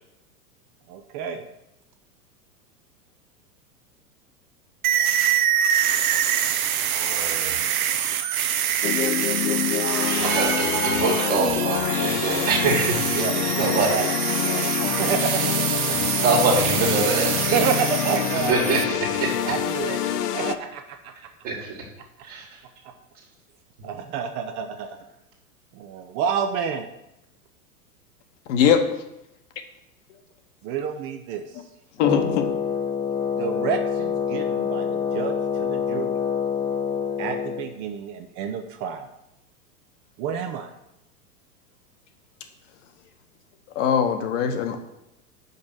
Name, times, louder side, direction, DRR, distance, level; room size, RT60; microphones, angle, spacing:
voice 1, 0.9-1.5 10.2-11.3 13.2-15.8 17.5-18.5 19.4-21.3 22.8-22.9 23.8-24.9 25.7-26.9 30.6-31.6 33.3-36.1 37.2-39.1 40.2-40.7, right 7 dB, 30° right, 6 dB, 0.4 m, -29 dB
sound 1, 4.8-18.8, right 10 dB, 70° right, 0.8 m, -25 dB
voice 2, 6.9-7.6 10.0-13.9 15.9-17.9 18.5-19.6 20.1-20.2 21.4-21.8 22.2-22.6, right 4 dB, 50° right, -3 dB, 1.8 m, -25 dB
sound 2, 8.8-20.6, left 10 dB, 85° left, 0.5 m, -26 dB
voice 3, 28.5-28.8 32.0-32.5 43.7-44.8, left 8 dB, 50° left, 6 dB, 1.1 m, -21 dB
Wind instrument woodwind instrument, 32.0-37.7, left 7 dB, 15° left, 0.8 m, -26 dB
5.4 x 5.1 x 6.0 m, 0.87 s
hypercardioid pair, 100°, 45 cm